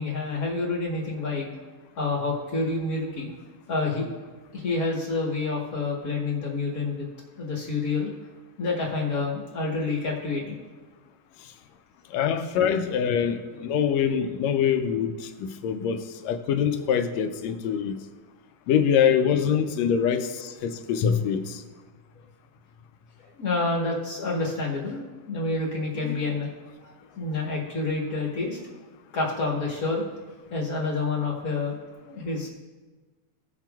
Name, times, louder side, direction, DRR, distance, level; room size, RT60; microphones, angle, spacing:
voice 1, 0.0-1.5 2.0-3.3 3.7-4.1 4.5-7.1 7.4-8.1 8.6-10.6 23.4-26.5 26.8-28.6 29.1-30.0 30.5-31.7 32.0-32.5, left 3 dB, 50° left, -3 dB, 1.1 m, -28 dB
voice 2, 12.1-18.0 18.7-21.6 26.0-26.2, left 8 dB, 75° left, 8 dB, 1.7 m, -24 dB
17.5 x 7.4 x 2.3 m, 1.3 s
omnidirectional pair, 3.4 m